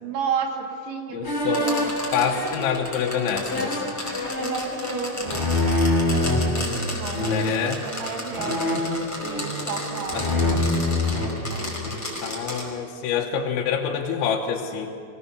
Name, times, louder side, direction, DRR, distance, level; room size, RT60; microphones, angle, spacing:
voice 1, 0.0-2.0 4.4-5.5 6.5-8.8 9.2-12.0, right 6 dB, 65° right, 3 dB, 3.6 m, -33 dB
voice 2, 1.1-1.7 2.1-3.8 7.2-7.8 8.4-8.6 10.2-10.3 12.2-14.9, left 7 dB, 90° left, -1 dB, 3.5 m, -26 dB
sound 1, 1.2-6.5 7.1-7.7 8.3-9.8 10.1-12.1, left 2 dB, 20° left, 2.2 m, -26 dB
sound 2, 1.5-12.7, left 1 dB, 5° left, 4.7 m, -33 dB
25.0 x 18.0 x 7.1 m, 2.3 s
omnidirectional pair, 5.1 m